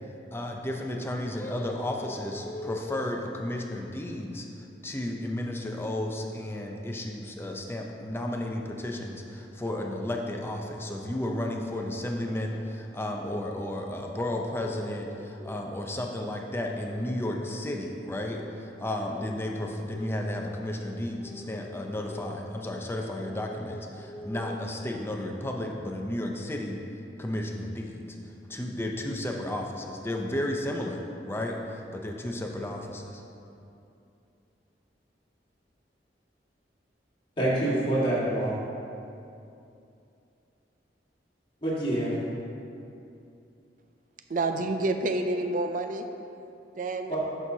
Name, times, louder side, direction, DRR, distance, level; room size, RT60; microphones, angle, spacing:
voice 1, 0.3-26.8 27.2-28.2 28.5-33.2, left 1 dB, 15° left, 1 dB, 0.6 m, -33 dB
voice 2, 37.4-38.5 41.6-42.1 47.1-47.2, right 1 dB, 30° left, -7 dB, 1.8 m, -26 dB
voice 3, 44.3-46.1 46.8-47.2, right 2 dB, 50° right, 6 dB, 0.5 m, -28 dB
11.5 x 6.1 x 2.8 m, 2.7 s
head